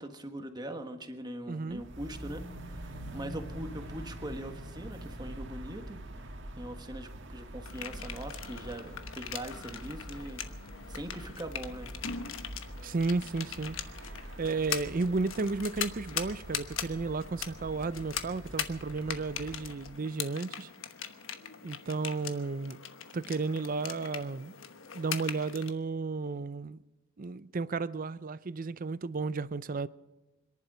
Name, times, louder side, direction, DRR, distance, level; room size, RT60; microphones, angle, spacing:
voice 1, 0.0-2.4 2.7-6.0 6.5-10.4 10.9-11.9, right 1 dB, 20° right, 1.5 m, -41 dB
voice 2, 1.5-1.8 12.8-13.8 14.4-20.7 21.6-22.8 23.1-24.5 24.9-26.8 27.2-29.9, right 3 dB, 45° right, 0.5 m, -33 dB
sound 1, 1.7-20.0, right 1 dB, 65° right, 1.8 m, -45 dB
sound 2, 7.7-25.7, left 8 dB, 75° left, 1.2 m, -41 dB
26.0 x 11.0 x 5.0 m
head